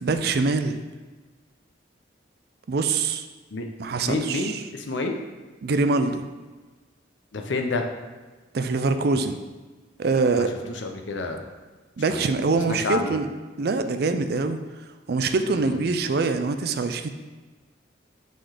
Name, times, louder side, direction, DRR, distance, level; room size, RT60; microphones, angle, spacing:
voice 1, 0.0-0.8 2.7-3.3 3.8-4.6 5.6-6.3 8.5-9.4 10.0-10.5 12.0-13.3 13.6-14.6 15.1-17.1, right 3 dB, 55° right, 8 dB, 0.4 m, -24 dB
voice 2, 4.0-5.1 7.3-7.9 10.4-10.5 10.8-11.4 12.1-12.3 12.7-13.1 15.5-15.8, left 3 dB, 80° left, 4 dB, 0.7 m, -29 dB
6.7 x 3.9 x 4.9 m, 1.3 s
head